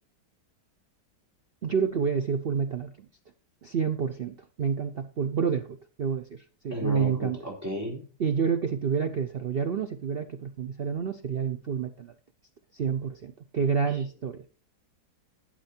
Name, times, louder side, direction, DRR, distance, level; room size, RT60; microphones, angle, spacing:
voice 1, 1.6-3.1 3.6-7.4 8.2-12.1 12.7-14.5, right 6 dB, 85° right, 9 dB, 0.5 m, -29 dB
voice 2, 6.7-8.0 13.9-14.0, left 1 dB, 10° right, -2 dB, 4.3 m, -34 dB
11.5 x 7.6 x 4.3 m, 0.38 s
omnidirectional pair, 1.9 m